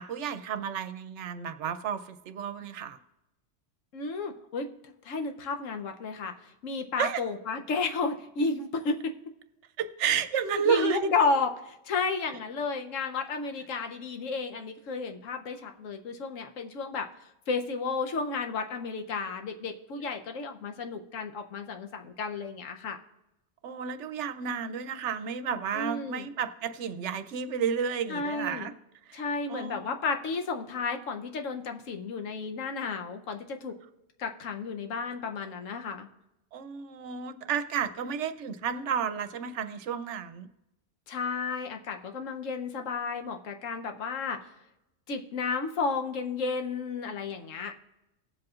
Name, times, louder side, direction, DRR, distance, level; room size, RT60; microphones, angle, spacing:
voice 1, 0.0-3.0 7.0-7.2 9.8-11.1 23.6-28.7 29.1-29.2 29.5-29.9 36.5-40.5, right 7 dB, 70° right, 10 dB, 0.9 m, -31 dB
voice 2, 3.9-4.7 5.0-9.1 10.5-17.1 17.5-23.0 25.7-26.3 28.1-28.7 29.1-33.8 34.2-36.1 41.1-44.5 45.1-47.7, left 4 dB, 85° left, 5 dB, 1.2 m, -32 dB
18.5 x 7.6 x 2.4 m, 0.93 s
omnidirectional pair, 1.3 m